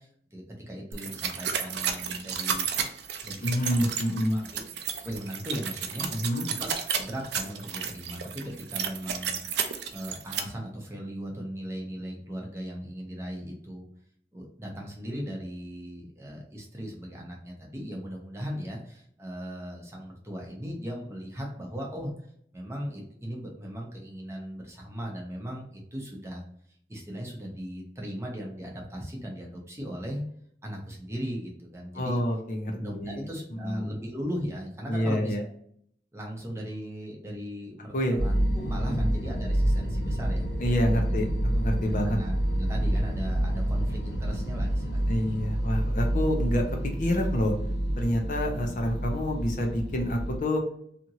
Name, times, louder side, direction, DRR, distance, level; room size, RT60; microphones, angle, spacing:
voice 1, 0.0-2.6 3.2-3.9 4.3-6.3 6.6-9.4 9.9-13.9 14.3-22.1 22.5-26.4 26.9-30.2 30.6-32.2 32.7-35.5 36.1-40.6 41.9-45.2, equal, 15° right, -1 dB, 0.7 m, -38 dB
sound 1, 0.9-10.4, right 7 dB, 75° right, 0.5 m, -32 dB
voice 2, 3.4-4.4 6.2-6.5 31.9-33.3 33.6-34.1 34.9-35.4 37.9-38.2 38.9-39.1 40.6-42.2 45.1-47.5 48.0-50.6, equal, 45° left, 2 dB, 0.6 m, -28 dB
sound 2, 38.2-50.4, right 1 dB, 85° left, 1.0 m, -28 dB
2.9 x 2.5 x 2.8 m, 0.66 s
head